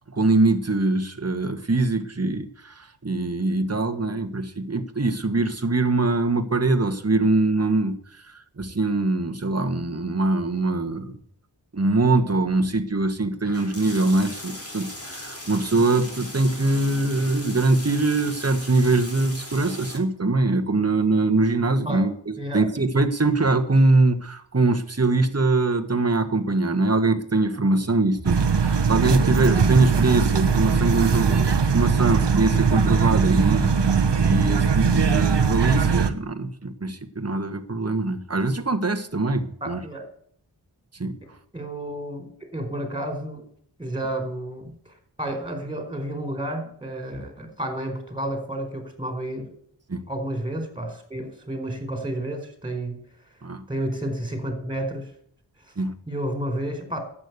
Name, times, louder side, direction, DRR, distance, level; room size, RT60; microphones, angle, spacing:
voice 1, 0.1-8.0 8.6-11.1 11.7-39.8 41.0-41.2 49.9-50.0 53.4-53.6 55.8-55.9, right 2 dB, 35° right, 7 dB, 1.5 m, -23 dB
sound 1, 13.4-20.0, left 1 dB, 35° left, 3.9 m, -38 dB
sound 2, 28.2-36.1, right 5 dB, 75° right, 1.1 m, -20 dB
voice 2, 39.6-40.1 41.5-43.4 43.8-44.7 45.2-49.5 50.1-53.0 53.7-55.1 56.1-57.0, right 1 dB, 10° right, 5 dB, 4.6 m, -31 dB
12.0 x 8.7 x 8.2 m, 0.63 s
wide cardioid pair, 45°, 43 cm